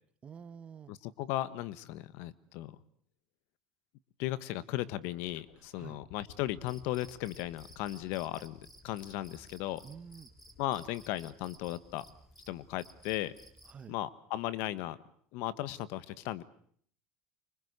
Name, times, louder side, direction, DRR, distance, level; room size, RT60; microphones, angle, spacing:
voice 1, 0.2-0.9 5.7-6.0 9.8-10.3 13.7-13.9, right 7 dB, 30° right, 15 dB, 1.2 m, -48 dB
voice 2, 0.9-2.8 4.2-9.8 10.6-12.0 12.5-13.3 13.9-15.0 15.3-16.4, left 15 dB, 70° left, 17 dB, 1.4 m, -36 dB
sound 1, 5.3-12.4 13.6-13.7, left 10 dB, 90° left, 2.6 m, -58 dB
Cricket, 6.6-13.8, right 1 dB, 5° left, 3.5 m, -57 dB
25.5 x 24.0 x 8.2 m, 0.62 s
supercardioid pair, 115°, 4 cm